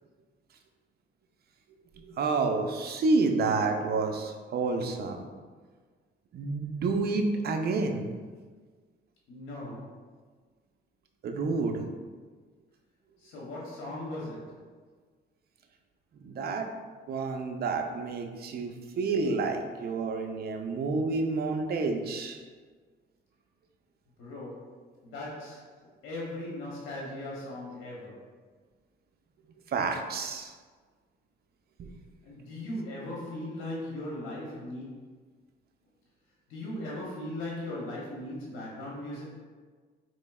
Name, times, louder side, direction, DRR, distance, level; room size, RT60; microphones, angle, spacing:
voice 1, 2.2-5.3 6.3-8.1 11.2-11.8 16.2-16.7 17.1-22.4 29.7-30.5 31.8-31.9, right 3 dB, 50° right, 4 dB, 0.5 m, -29 dB
voice 2, 9.3-10.0 13.2-14.7 24.2-25.7 26.0-28.3 32.2-34.8 36.5-39.2, left 1 dB, 85° left, -4 dB, 0.8 m, -38 dB
4.2 x 3.1 x 2.3 m, 1.5 s
cardioid pair, 90°, 20 cm